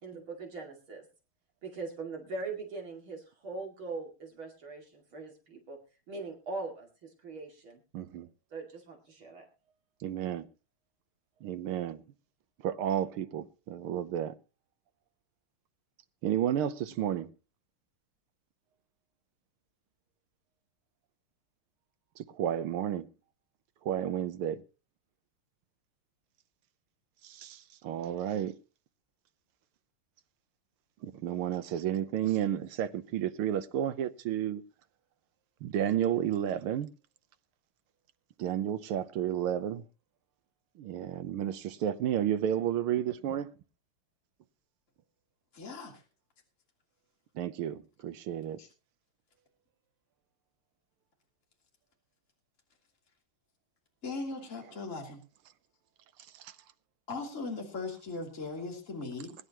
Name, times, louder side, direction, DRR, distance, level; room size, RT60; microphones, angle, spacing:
voice 1, 0.0-1.0 1.6-5.8 6.1-7.8 8.5-9.4, right 3 dB, 70° right, 3.2 m, -41 dB
voice 2, 7.9-8.3 10.0-10.5 11.4-12.0 12.6-14.4 16.2-17.3 22.2-23.1 23.8-24.6 27.2-28.6 31.0-34.6 35.6-36.9 38.4-39.8 40.8-43.5 47.3-48.6 54.6-54.8 56.3-56.5, right 10 dB, 90° right, 1.8 m, -32 dB
voice 3, 45.5-45.9 48.6-48.7 54.0-55.2 57.1-59.3, left 3 dB, 35° left, 3.2 m, -38 dB
21.0 x 11.0 x 3.0 m
omnidirectional pair, 2.3 m